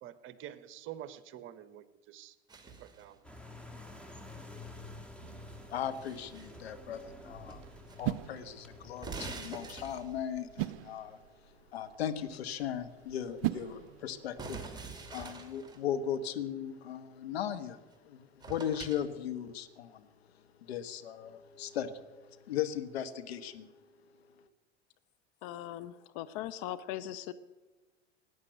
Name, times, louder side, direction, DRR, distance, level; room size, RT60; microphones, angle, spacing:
voice 1, 0.0-2.3 3.0-3.2, right 11 dB, 35° right, 15 dB, 1.1 m, -47 dB
sound 1, 2.5-3.1 5.5-6.6 7.5-8.0 8.2-8.3 8.9-10.3 14.4-15.8 17.9-18.0 18.4-19.1, right 4 dB, 10° right, 2.6 m, -45 dB
sound 2, 3.2-9.3, left 2 dB, 5° left, 1.9 m, -50 dB
sound 3, 5.2-14.5, right 17 dB, 60° right, 0.6 m, -42 dB
voice 2, 5.7-7.6 7.9-11.2 11.7-20.1 20.7-23.7, left 9 dB, 65° left, 9 dB, 1.3 m, -38 dB
voice 3, 25.4-27.3, left 13 dB, 45° left, 13 dB, 0.7 m, -40 dB
17.5 x 9.6 x 8.0 m, 1.2 s
figure-of-eight pair, 85°, 33 cm